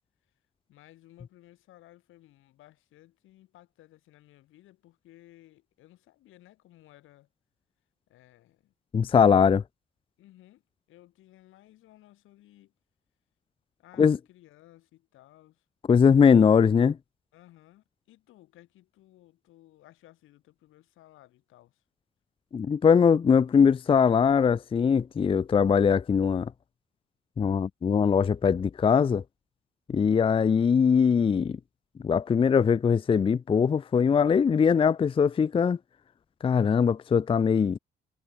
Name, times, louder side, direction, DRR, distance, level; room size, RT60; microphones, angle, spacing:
voice 1, 0.7-7.3 8.1-8.7 10.2-10.6 10.9-12.7 13.8-15.6 17.3-21.8, left 15 dB, 90° left, 5.9 m, -57 dB
voice 2, 8.9-9.6 14.0-14.2 15.9-17.0 22.5-26.5 27.4-29.2 29.9-31.6 32.0-35.8 36.4-37.8, left 6 dB, 25° left, 0.4 m, -21 dB
cardioid pair, 90°, 20 cm